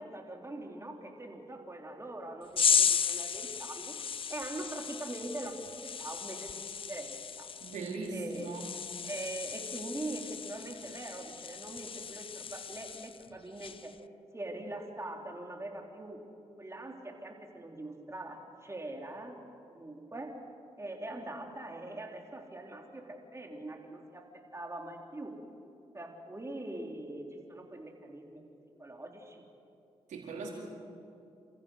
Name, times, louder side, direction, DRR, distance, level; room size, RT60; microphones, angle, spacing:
voice 1, 0.0-3.9 4.3-5.7 6.0-7.5 8.1-8.6 9.0-13.9 14.3-16.2 16.6-19.4 19.7-20.3 20.8-24.3 24.5-25.4 25.9-28.4 28.8-29.4, right 1 dB, 20° right, 2 dB, 3.7 m, -42 dB
sound 1, 2.6-13.3 13.6-13.9, left 7 dB, 45° left, 0.5 m, -34 dB
voice 2, 7.6-8.7 30.1-30.5, right 3 dB, 80° right, -1 dB, 4.5 m, -39 dB
28.0 x 14.5 x 6.5 m, 2.6 s
supercardioid pair, 55°, 13 cm